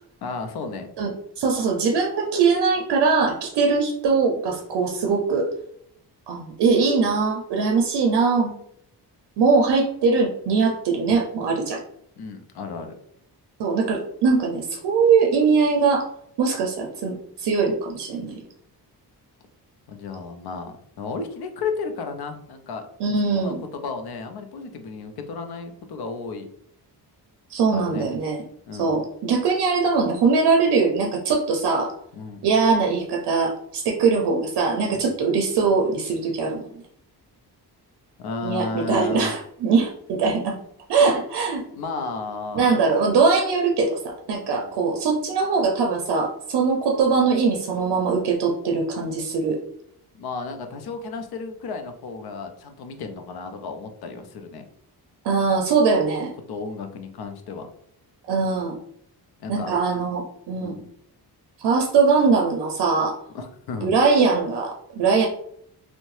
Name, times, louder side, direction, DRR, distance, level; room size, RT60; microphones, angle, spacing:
voice 1, 0.2-0.9 12.2-12.9 19.9-22.9 23.3-26.5 27.7-28.1 28.7-29.0 32.1-32.4 34.9-35.1 38.2-39.3 41.8-42.9 44.5-44.7 50.1-54.6 56.5-57.7 59.4-59.8 60.6-60.9 63.3-63.9, left 4 dB, 65° left, 6 dB, 0.5 m, -33 dB
voice 2, 1.4-5.5 6.3-8.5 9.4-11.8 13.6-16.1 16.4-18.4 23.0-23.6 27.5-28.4 28.8-31.9 32.4-36.6 38.4-40.6 40.9-41.6 42.5-49.6 55.2-56.3 58.3-58.8 59.5-60.7 61.6-63.2 63.8-65.3, right 4 dB, 80° right, 1 dB, 0.5 m, -21 dB
2.7 x 2.1 x 3.0 m, 0.69 s
wide cardioid pair, 160°, 40 cm